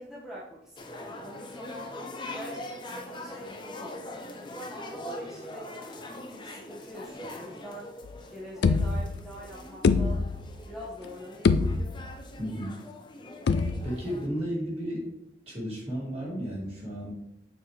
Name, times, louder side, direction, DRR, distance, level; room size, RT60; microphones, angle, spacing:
voice 1, 0.0-7.9 8.3-10.2 10.7-11.8, equal, 5° right, -8 dB, 0.9 m, -44 dB
sound 1, 0.8-14.3, left 1 dB, 25° left, 0.7 m, -43 dB
boat footsteps soft, 8.1-8.2 8.6-9.4 9.8-10.7 11.0-11.1 11.5-12.2 13.5-14.1, left 4 dB, 70° left, 0.4 m, -25 dB
voice 2, 12.4-12.7 13.8-15.1 15.5-17.1, equal, 35° right, -6 dB, 2.5 m, -33 dB
6.9 x 4.4 x 3.2 m, 0.80 s
head